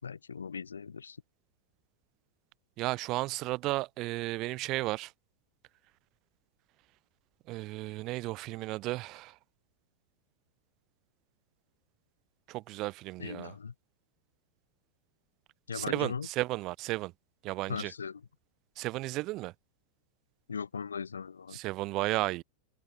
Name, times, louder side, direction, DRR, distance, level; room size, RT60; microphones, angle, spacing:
voice 1, 0.0-1.2 13.2-13.7 15.7-16.3 17.7-18.2 20.5-21.6, left 6 dB, 70° left, 3.6 m, -38 dB
voice 2, 2.8-5.1 7.5-9.4 12.5-13.5 15.7-17.1 17.4-17.9 18.8-19.5 21.5-22.4, right 19 dB, 40° right, 7.0 m, -34 dB
figure-of-eight pair, 90°, 0 cm